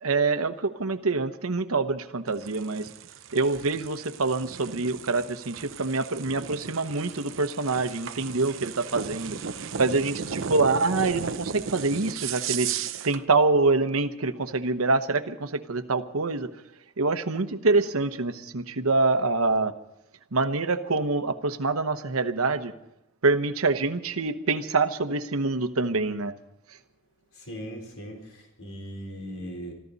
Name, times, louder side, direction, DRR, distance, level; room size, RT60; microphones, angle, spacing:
voice 1, 0.0-2.9 3.3-9.4 9.8-12.7 13.0-16.6 17.0-19.7 20.3-22.7 23.2-26.3, right 3 dB, 90° right, 10 dB, 1.0 m, -25 dB
sound 1, 2.3-13.2, right 7 dB, 70° right, 0.8 m, -36 dB
voice 2, 27.3-29.7, equal, 75° left, 1 dB, 4.0 m, -39 dB
25.0 x 13.5 x 4.1 m, 0.88 s
head